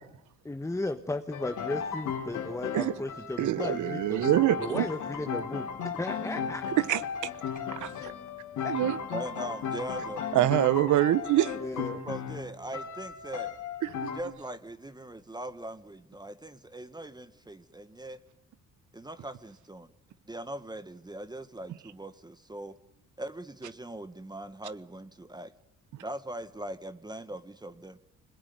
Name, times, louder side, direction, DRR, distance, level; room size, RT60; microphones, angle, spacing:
voice 1, 0.4-5.6 6.0-6.6 8.0-8.1 8.6-8.7 11.5-12.0, left 2 dB, 10° left, 1.2 m, -35 dB
sound 1, 1.3-14.2, left 7 dB, 80° left, 3.2 m, -36 dB
voice 2, 3.4-4.9 6.9-7.0 7.7-8.1 8.7-9.0 10.3-11.8 13.8-14.1, right 13 dB, 75° right, 1.1 m, -25 dB
voice 3, 9.1-10.3 12.0-13.5 14.1-18.2 18.9-19.9 20.3-22.8 23.2-25.5 26.0-28.0, right 1 dB, 15° right, 1.4 m, -40 dB
26.0 x 21.0 x 9.5 m
cardioid pair, 90°, 30 cm